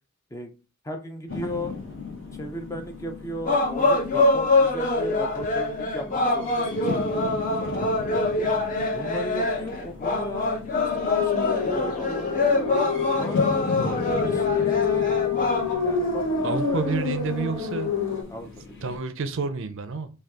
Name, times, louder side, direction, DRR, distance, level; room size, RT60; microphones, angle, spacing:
voice 1, 0.8-1.8 2.3-7.9 8.8-10.6 10.9-12.3 13.2-13.9 14.2-15.1 15.8-17.0 18.3-18.5 18.8-18.9, equal, 15° left, 0.4 m, -36 dB
sound 1, 1.3-19.0, left 4 dB, 55° left, 1.6 m, -37 dB
sound 2, 3.4-15.7, left 2 dB, 35° left, 0.8 m, -25 dB
sound 3, 10.7-18.2, left 6 dB, 85° left, 1.6 m, -28 dB
voice 2, 13.6-14.2 16.4-17.9 18.8-20.1, right 4 dB, 60° right, 0.5 m, -29 dB
5.1 x 2.3 x 3.5 m
head